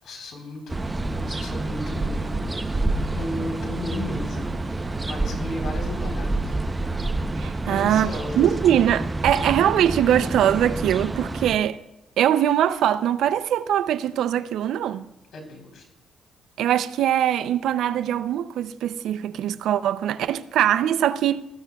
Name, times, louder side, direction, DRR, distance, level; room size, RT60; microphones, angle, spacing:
voice 1, 0.0-2.6 3.1-6.5 7.6-8.5 15.3-15.9, left 1 dB, 70° left, 3.9 m, -35 dB
sound 1, 0.7-11.6, right 2 dB, 20° right, 0.7 m, -28 dB
voice 2, 7.4-8.1 8.4-11.8 12.2-15.0 16.6-21.5, right 10 dB, 80° right, 0.5 m, -22 dB
20.5 x 13.5 x 2.3 m
cardioid pair, 90°, 0 cm